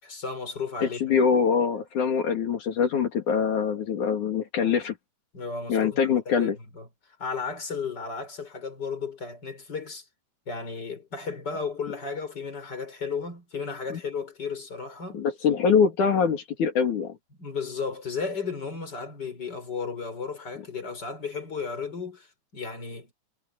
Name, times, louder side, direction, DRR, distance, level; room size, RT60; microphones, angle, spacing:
voice 1, 0.0-1.2 5.3-10.1 10.5-15.3 17.4-23.1, left 5 dB, 30° left, 5.6 m, -34 dB
voice 2, 1.0-4.9 5.7-6.6 13.9-14.0 15.1-17.2, left 6 dB, 75° left, 3.9 m, -24 dB
omnidirectional pair, 3.6 m